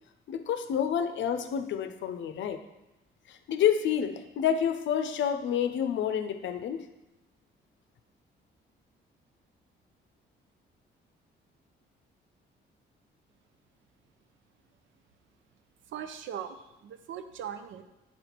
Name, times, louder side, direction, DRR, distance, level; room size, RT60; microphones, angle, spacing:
voice 1, 0.3-2.6 3.3-6.9, left 8 dB, 70° left, 9 dB, 0.6 m, -29 dB
voice 2, 15.9-17.8, right 8 dB, 75° right, 9 dB, 0.6 m, -40 dB
7.6 x 4.1 x 4.4 m, 0.97 s
cardioid pair, 90°, 20 cm